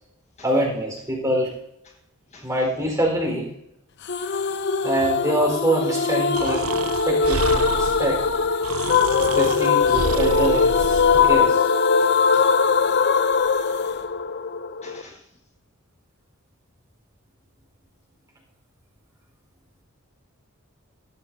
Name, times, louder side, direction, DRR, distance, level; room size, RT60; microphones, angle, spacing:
voice 1, 0.4-1.5 2.4-3.5 4.8-6.7 7.1-8.2 9.1-11.7, right 1 dB, 15° right, -1 dB, 4.4 m, -25 dB
sound 1, 4.1-15.0, left 5 dB, 55° left, 0.6 m, -21 dB
Breathing, 6.3-11.4, right 5 dB, 75° right, 0.5 m, -30 dB
voice 2, 12.0-12.5 14.8-15.2, left 3 dB, 30° left, 1 dB, 1.4 m, -47 dB
17.0 x 13.0 x 2.7 m, 0.81 s
head